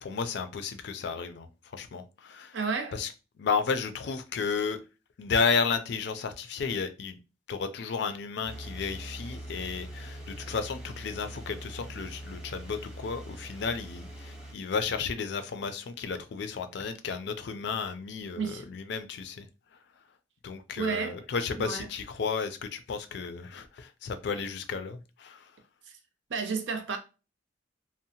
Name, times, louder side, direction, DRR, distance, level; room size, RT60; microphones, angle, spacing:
voice 1, 0.0-2.6 2.9-3.1 3.4-4.8 5.2-7.2 7.5-19.5 20.4-25.5, left 5 dB, 65° left, 0.4 m, -33 dB
voice 2, 2.5-3.0 18.4-18.6 20.8-21.1 21.6-21.9 25.9-26.0 26.3-27.0, right 5 dB, 80° right, 0.5 m, -31 dB
sound 1, 8.4-14.5, right 1 dB, 5° right, 0.7 m, -42 dB
2.7 x 2.0 x 2.7 m
head